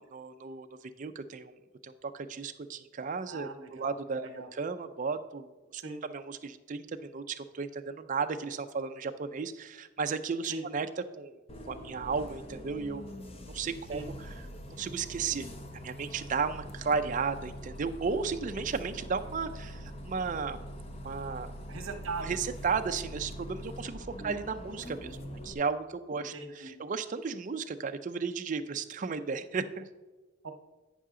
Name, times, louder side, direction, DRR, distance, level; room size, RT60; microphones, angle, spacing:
voice 1, 0.0-1.6 1.8-5.5 5.7-10.9 11.2-11.4 11.7-13.1 13.5-14.0 14.8-15.5 15.8-20.6 21.0-21.5 22.2-25.2 25.4-29.8, right 5 dB, 35° right, 9 dB, 0.4 m, -34 dB
voice 2, 3.3-4.5 5.8-6.0 10.4-10.6 13.9-14.1 21.7-22.4 24.2-24.3 26.1-26.7 30.4-30.5, right 3 dB, 70° right, 6 dB, 1.0 m, -40 dB
Bus, 11.5-25.5, equal, 30° left, 0.6 m, -43 dB
9.2 x 5.6 x 3.7 m, 1.2 s
head